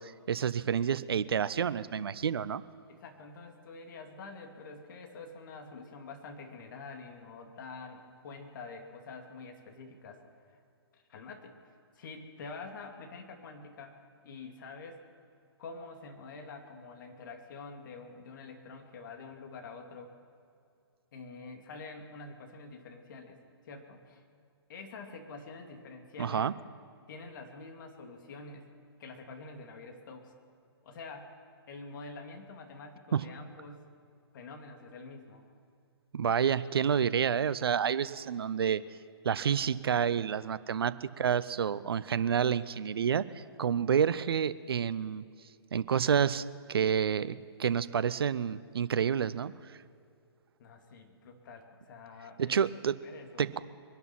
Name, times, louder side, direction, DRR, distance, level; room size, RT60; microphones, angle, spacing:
voice 1, 0.0-2.6 26.2-26.5 33.1-33.2 36.1-38.8 39.2-45.2 45.7-49.8 52.4-52.9 53.4-53.6, right 7 dB, 65° right, 16 dB, 0.7 m, -29 dB
voice 2, 2.9-10.2 10.5-10.6 10.9-11.5 11.9-15.0 15.6-20.1 21.1-23.4 23.6-24.2 24.7-26.5 27.1-28.7 29.0-30.3 30.8-31.4 31.7-33.9 34.3-35.5 50.6-52.7 53.0-53.6, left 4 dB, 50° left, 3 dB, 2.4 m, -47 dB
23.0 x 11.0 x 5.8 m, 2.3 s
figure-of-eight pair, 125°, 14 cm